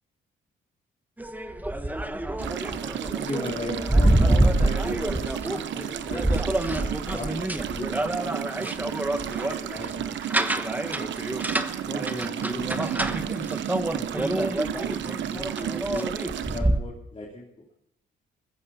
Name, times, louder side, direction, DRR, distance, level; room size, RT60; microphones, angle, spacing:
sound 1, 1.2-16.8, right 1 dB, 10° right, 1.2 m, -27 dB
sound 2, 2.4-16.6, right 10 dB, 70° right, 1.0 m, -33 dB
voice 1, 3.2-10.0 10.3-11.3 11.9-13.6 13.9-14.1 14.6-17.7, left 2 dB, 30° left, -4 dB, 3.4 m, -39 dB
21.0 x 15.0 x 4.3 m, 0.80 s
cardioid pair, 90°, 20 cm